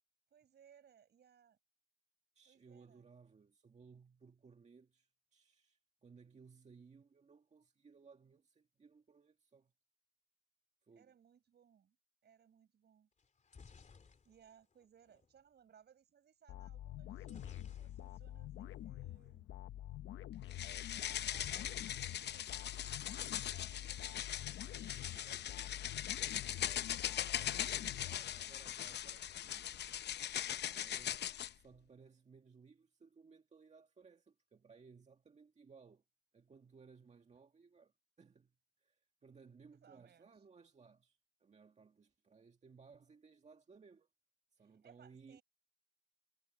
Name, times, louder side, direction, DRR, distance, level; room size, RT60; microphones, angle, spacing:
voice 1, 0.3-1.6 2.5-3.0 11.0-12.0 12.2-13.1 14.2-19.5 20.9-24.5 27.4-27.7 39.8-40.4 44.6-45.4, right 8 dB, 55° right, 7.8 m, -66 dB
voice 2, 2.4-9.7 10.8-11.1 24.7-26.9 27.2-29.8 30.3-36.0 36.3-44.1 44.5-45.4, right 5 dB, 35° right, 1.8 m, -62 dB
sound 1, 13.2-15.3 17.2-18.4 18.7-18.8 19.1-19.3 21.2-22.4 22.7-23.3, left 5 dB, 40° left, 3.0 m, -57 dB
sound 2, 16.5-28.8, left 13 dB, 75° left, 1.0 m, -48 dB
sound 3, 20.5-31.5, left 11 dB, 60° left, 0.7 m, -40 dB
cardioid pair, 90°, 20 cm